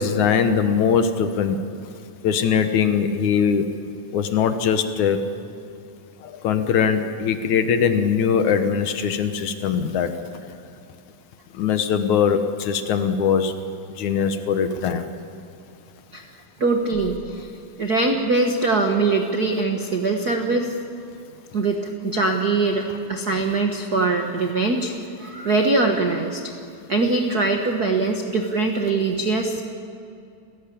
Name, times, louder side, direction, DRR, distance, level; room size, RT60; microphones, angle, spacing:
voice 1, 0.0-1.6 2.2-3.7 4.1-5.2 6.2-10.1 11.6-13.5 14.0-15.1, left 7 dB, 65° left, 9 dB, 2.3 m, -21 dB
voice 2, 16.6-17.5 17.8-20.7 21.5-24.9 25.2-26.4 26.9-29.6, right 3 dB, 90° right, 4 dB, 0.8 m, -22 dB
29.0 x 17.0 x 8.6 m, 2.5 s
omnidirectional pair, 4.2 m